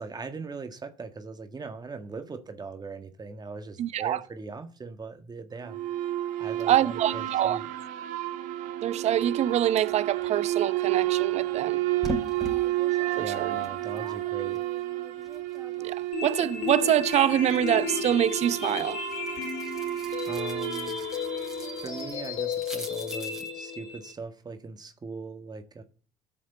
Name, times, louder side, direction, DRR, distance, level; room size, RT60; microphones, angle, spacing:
voice 1, 0.0-5.8 6.4-7.7 13.2-14.6 20.3-21.0 21.8-25.8, right 4 dB, 30° right, 1.7 m, -40 dB
voice 2, 3.8-4.2 6.7-7.6 8.8-11.8 13.2-13.5 15.8-19.0, right 11 dB, 55° right, 0.8 m, -25 dB
sound 1, 5.7-22.3, right 15 dB, 70° right, 1.2 m, -31 dB
sound 2, 12.0-15.9 16.3-23.5, equal, 5° right, 3.9 m, -42 dB
sound 3, 16.1-24.1, left 8 dB, 65° left, 3.5 m, -34 dB
13.0 x 6.5 x 8.0 m
hypercardioid pair, 60°, 13 cm